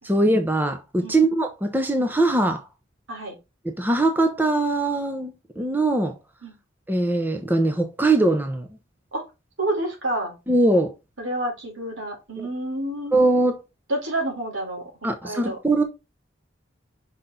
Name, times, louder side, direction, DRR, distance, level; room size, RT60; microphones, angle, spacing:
voice 1, 0.0-2.6 3.8-6.2 6.9-8.7 10.5-10.9 12.4-12.5 13.1-13.6 15.0-15.8, right 2 dB, 10° right, 0.8 m, -21 dB
voice 2, 9.6-10.3 11.2-13.2 13.9-14.8 15.2-15.6, right 1 dB, 80° right, 4.1 m, -29 dB
5.8 x 5.8 x 3.9 m
head